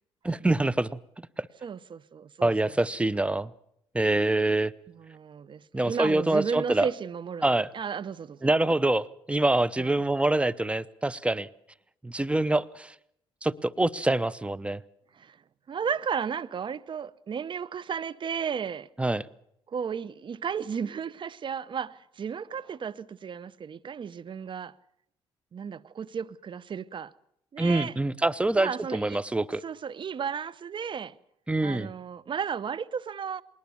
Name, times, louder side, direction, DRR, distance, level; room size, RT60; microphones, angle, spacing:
voice 1, 0.2-1.0 1.4-1.5 2.4-3.5 3.9-4.7 5.7-6.9 7.4-7.7 8.4-11.5 12.0-12.9 13.4-14.8 19.0-19.3 27.6-29.6 31.5-31.9, right 2 dB, 10° right, 0.8 m, -25 dB
voice 2, 1.6-2.7 5.0-7.5 7.7-8.5 9.8-9.9 15.1-15.4 15.7-18.9 19.7-24.7 25.5-27.1 27.5-27.9 28.6-29.2 29.6-31.2 31.6-33.4, right 7 dB, 45° right, 0.8 m, -34 dB
20.5 x 19.0 x 7.1 m
supercardioid pair, 60°, 12 cm